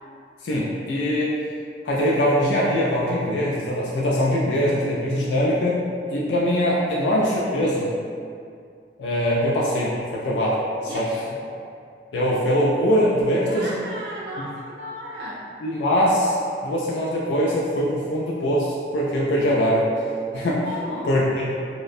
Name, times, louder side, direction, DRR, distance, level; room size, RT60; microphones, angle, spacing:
voice 1, 0.4-1.4 1.8-5.8 6.1-7.9 9.0-11.1 12.1-13.7 15.6-16.4 16.6-19.9 20.3-20.6 21.1-21.5, equal, 75° left, -5 dB, 0.3 m, -22 dB
voice 2, 10.8-11.3 13.4-15.4 20.6-21.1, equal, 65° right, -6 dB, 0.6 m, -34 dB
2.4 x 2.1 x 2.5 m, 2.3 s
head